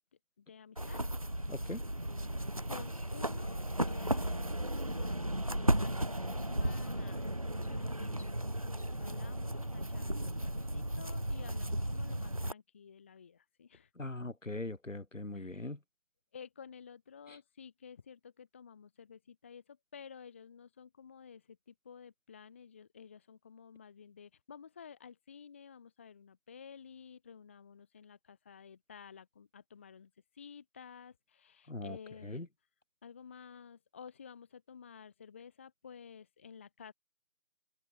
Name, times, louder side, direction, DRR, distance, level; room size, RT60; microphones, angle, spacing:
voice 1, 0.4-1.0 2.7-3.6 3.9-4.4 4.8-13.9 15.3-15.7 16.3-32.5 33.0-36.9, left 7 dB, 10° left, 1.6 m, -53 dB
sound 1, 0.8-12.5, right 1 dB, 25° right, 0.8 m, -35 dB
voice 2, 1.5-1.8 14.0-15.8 31.7-32.0 32.2-32.5, left 2 dB, 70° left, 7.1 m, -40 dB
figure-of-eight pair, 165°, 39 cm